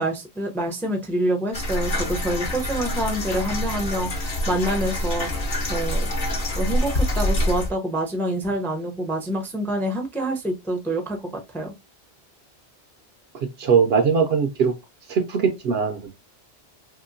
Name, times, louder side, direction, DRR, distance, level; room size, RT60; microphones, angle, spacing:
voice 1, 0.0-5.3 5.7-6.1 6.5-11.7, right 1 dB, 5° left, 0.4 m, -26 dB
heating no contact, 1.5-7.7, left 1 dB, 55° left, 1.0 m, -26 dB
voice 2, 13.3-14.7 15.1-16.0, right 6 dB, 70° right, 0.8 m, -21 dB
3.0 x 2.8 x 2.5 m
omnidirectional pair, 1.1 m